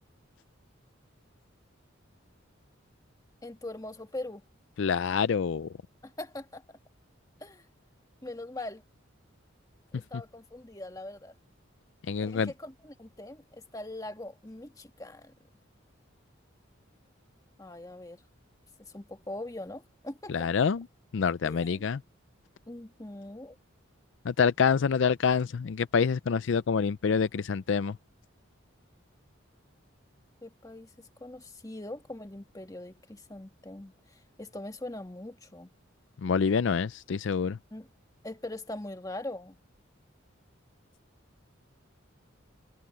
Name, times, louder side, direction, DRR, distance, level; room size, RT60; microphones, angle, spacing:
voice 1, 3.4-4.4 6.0-6.8 7.4-7.6 8.2-8.8 9.9-11.3 12.2-15.3 17.6-18.2 18.8-20.5 21.4-21.9 22.7-23.6 30.4-35.7 37.7-37.9 38.2-39.6, left 1 dB, 15° left, 1.6 m, -42 dB
voice 2, 4.8-5.7 12.1-12.5 20.3-20.9 21.1-22.0 24.2-28.0 36.2-37.6, left 6 dB, 65° left, 0.4 m, -26 dB
head